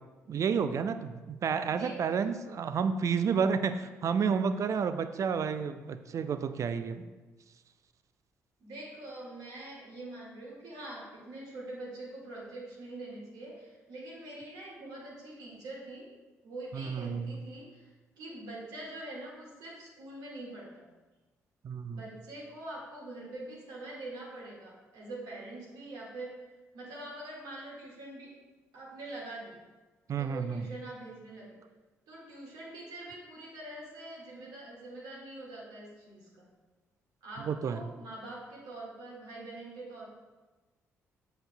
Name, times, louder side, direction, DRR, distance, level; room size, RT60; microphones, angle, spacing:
voice 1, 0.3-7.1 16.7-17.3 21.6-22.0 30.1-30.7 37.4-37.8, right 6 dB, 45° right, 10 dB, 0.4 m, -30 dB
voice 2, 1.6-2.2 8.6-16.1 16.4-20.9 21.9-26.3 26.7-28.3 28.7-29.6 30.2-31.6 32.1-36.5 37.2-40.1, right 2 dB, 60° right, -4 dB, 1.9 m, -44 dB
7.7 x 7.1 x 2.3 m, 1.2 s
figure-of-eight pair, 40°, 8 cm